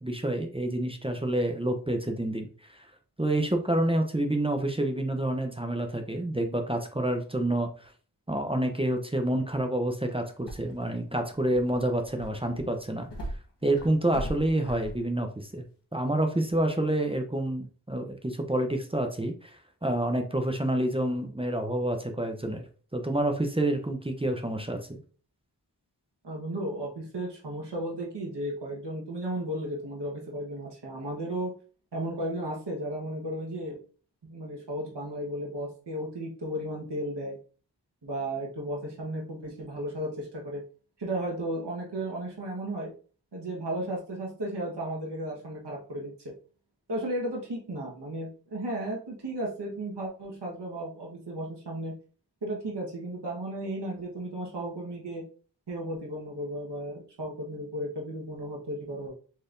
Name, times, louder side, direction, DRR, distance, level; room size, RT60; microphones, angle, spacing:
voice 1, 0.0-2.5 2.7-2.9 3.2-7.9 8.3-13.1 13.6-15.6 15.9-22.6 22.9-25.0, right 1 dB, 15° right, 5 dB, 0.6 m, -28 dB
sound 1, 10.5-15.0 16.5-16.6, equal, 75° left, 1.1 m, -40 dB
voice 2, 26.2-31.5 31.9-33.8 34.2-37.4 38.0-40.6 41.0-42.9 43.3-46.3 46.9-51.9 52.4-55.2 55.7-59.1, right 1 dB, 75° right, -3 dB, 1.2 m, -34 dB
4.3 x 3.3 x 2.5 m, 0.39 s
wide cardioid pair, 40°, 41 cm